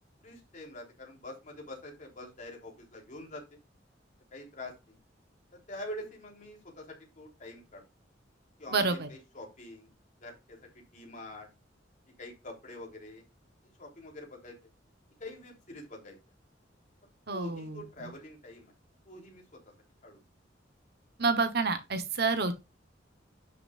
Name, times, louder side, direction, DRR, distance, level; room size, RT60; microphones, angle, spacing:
voice 1, 0.2-3.4 4.3-5.0 5.5-7.8 8.6-9.9 10.2-11.5 12.2-13.2 13.6-14.6 15.2-16.2 17.3-18.7 19.1-19.6 20.0-20.2, left 1 dB, 45° left, 3.5 m, -45 dB
voice 2, 8.7-9.1 17.3-17.8 21.2-22.7, right 4 dB, 60° right, 1.1 m, -29 dB
11.0 x 6.7 x 2.5 m
head